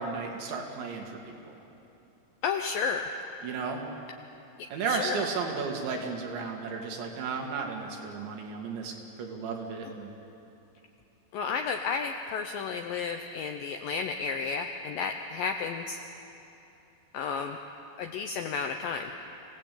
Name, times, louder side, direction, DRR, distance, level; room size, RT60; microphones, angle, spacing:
voice 1, 0.0-1.6 3.4-3.9 4.7-10.1, right 5 dB, 90° right, 2 dB, 4.4 m, -34 dB
voice 2, 2.4-3.1 4.6-5.2 11.3-16.0 17.1-17.6 18.0-19.1, left 5 dB, 85° left, 5 dB, 2.0 m, -32 dB
26.5 x 17.5 x 8.4 m, 2.8 s
omnidirectional pair, 5.1 m